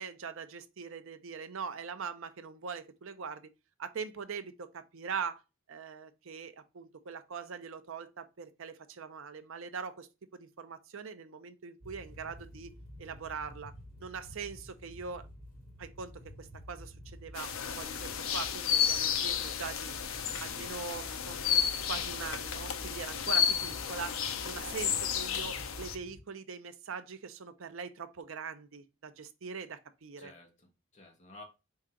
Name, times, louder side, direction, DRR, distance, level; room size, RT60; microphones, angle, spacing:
voice 1, 0.0-3.5 3.8-5.4 5.7-12.7 13.0-13.7 14.0-15.3 15.8-20.0 20.4-21.6 21.9-24.2 24.4-30.3, right 5 dB, 65° right, 0.5 m, -42 dB
sound 1, 11.8-26.2, left 1 dB, 5° left, 1.7 m, -50 dB
sound 2, 17.4-26.0, left 8 dB, 70° left, 0.5 m, -32 dB
voice 2, 20.2-20.7 30.2-31.4, left 2 dB, 30° left, 1.2 m, -54 dB
4.7 x 2.8 x 3.6 m
head